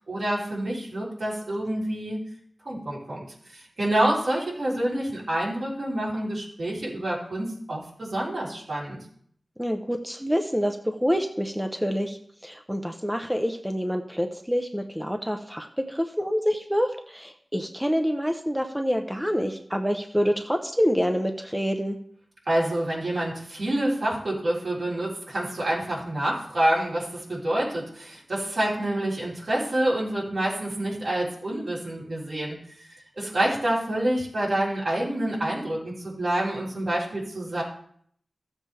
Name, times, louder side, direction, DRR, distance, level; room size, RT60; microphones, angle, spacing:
voice 1, 0.1-2.2 2.7-9.0 22.5-32.6 32.9-37.6, right 1 dB, 65° right, -6 dB, 4.0 m, -27 dB
voice 2, 9.6-12.2 12.4-22.0, equal, 5° right, 4 dB, 0.8 m, -27 dB
14.0 x 7.5 x 3.5 m, 0.62 s
wide cardioid pair, 65°, 0 cm